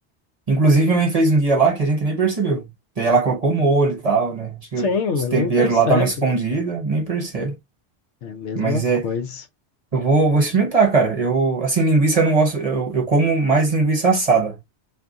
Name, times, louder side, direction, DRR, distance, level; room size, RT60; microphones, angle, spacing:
voice 1, 0.5-2.7 3.0-4.9 5.3-7.6 8.5-9.0 9.9-14.6, right 3 dB, 35° right, 0.8 m, -19 dB
voice 2, 4.8-6.1 8.2-9.4, left 5 dB, 80° left, 1.0 m, -25 dB
2.6 x 2.5 x 3.4 m
omnidirectional pair, 1.2 m